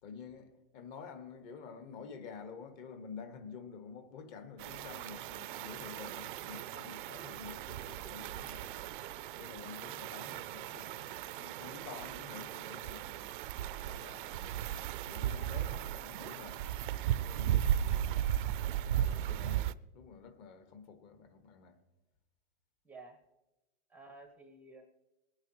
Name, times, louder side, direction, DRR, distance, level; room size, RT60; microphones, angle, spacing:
voice 1, 0.0-8.9 9.3-13.2 13.8-16.8 17.1-18.5 18.9-21.8, left 6 dB, 40° left, 1.5 m, -50 dB
sound 1, 4.6-19.7, right 11 dB, 55° right, 0.4 m, -36 dB
voice 2, 22.8-23.2 23.9-24.8, right 3 dB, 5° right, 0.6 m, -52 dB
20.5 x 9.6 x 3.0 m
supercardioid pair, 160°, 31 cm